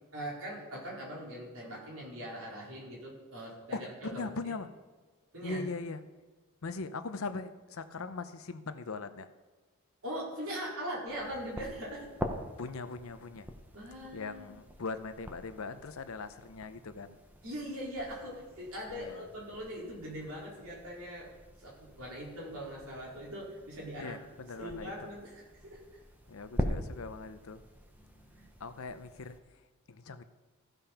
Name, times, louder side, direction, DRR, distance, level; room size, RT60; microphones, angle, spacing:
voice 1, 0.1-4.3 5.3-5.6 10.0-12.1 13.7-14.5 17.4-21.3 21.6-24.1 24.6-26.0 28.0-28.5, equal, 75° right, -4 dB, 3.9 m, -41 dB
voice 2, 3.5-4.7 5.4-6.0 6.6-9.3 12.6-13.5 14.1-17.2 19.0-19.3 24.0-25.1 26.3-27.6 28.6-30.2, left 4 dB, 70° left, 11 dB, 0.7 m, -40 dB
sound 1, 11.1-29.4, equal, 10° right, 0.8 m, -44 dB
14.5 x 5.3 x 5.7 m, 1.4 s
head